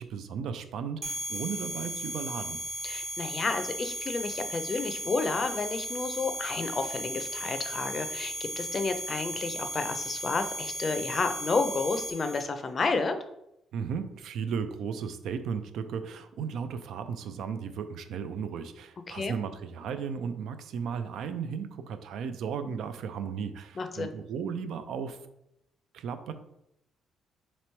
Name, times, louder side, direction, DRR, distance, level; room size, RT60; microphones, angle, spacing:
voice 1, 0.0-2.6 13.7-25.2 25.9-26.3, right 6 dB, 80° right, 9 dB, 0.4 m, -35 dB
sound 1, 1.0-12.4, right 1 dB, 40° right, 0.7 m, -36 dB
voice 2, 2.8-13.2 19.1-19.4 23.8-24.1, left 4 dB, 40° left, 8 dB, 0.5 m, -31 dB
3.0 x 2.9 x 4.4 m, 0.82 s
cardioid pair, 90°, 0 cm